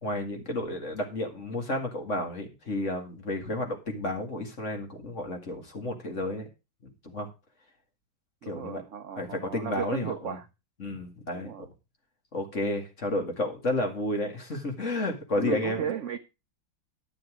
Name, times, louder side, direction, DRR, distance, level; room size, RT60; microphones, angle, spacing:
voice 1, 0.0-6.5 6.8-7.3 8.4-8.8 9.2-10.4 10.8-11.7 12.3-15.8, left 1 dB, 40° left, 2.4 m, -31 dB
voice 2, 8.4-10.5 11.3-11.7 15.3-16.2, right 8 dB, 70° right, 0.7 m, -35 dB
12.0 x 6.9 x 5.0 m
omnidirectional pair, 2.1 m